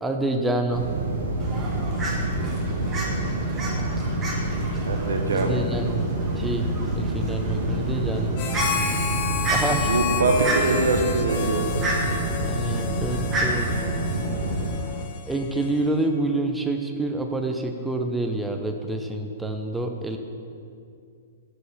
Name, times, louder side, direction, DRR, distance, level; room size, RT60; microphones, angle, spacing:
voice 1, 0.0-0.9 5.3-6.1 6.4-8.5 9.5-9.9 12.4-13.8 15.3-20.2, right 1 dB, 5° right, 4 dB, 0.4 m, -27 dB
sound 1, 0.7-14.7, right 2 dB, 65° right, 1.1 m, -27 dB
Fowl, 1.4-15.0, right 2 dB, 20° right, 1.1 m, -33 dB
voice 2, 4.9-5.6 9.9-11.6, right 2 dB, 90° right, 4 dB, 0.7 m, -23 dB
Harmonica, 8.4-16.1, left 7 dB, 45° left, 0.7 m, -32 dB
4.8 x 4.7 x 5.4 m, 2.4 s
hypercardioid pair, 140°, 0 cm